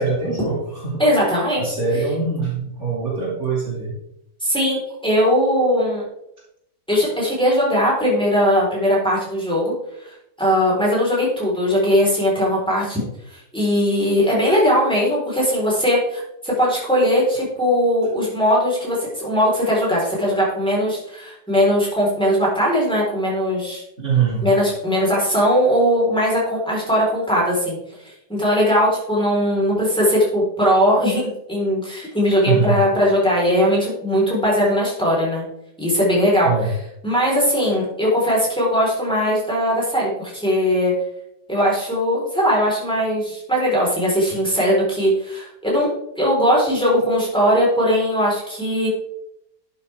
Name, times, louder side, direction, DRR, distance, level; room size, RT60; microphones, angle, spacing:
voice 1, 0.0-1.0 1.6-3.9 24.0-24.4 32.5-32.8 36.4-36.7, right 5 dB, 45° right, -5 dB, 2.9 m, -22 dB
voice 2, 1.0-1.6 4.4-6.0 6.9-9.7 10.0-23.8 24.4-35.4 35.8-36.5 37.0-40.9 41.5-45.9 46.2-48.9, equal, 5° left, -5 dB, 4.0 m, -19 dB
11.5 x 8.1 x 3.5 m, 0.81 s
omnidirectional pair, 1.8 m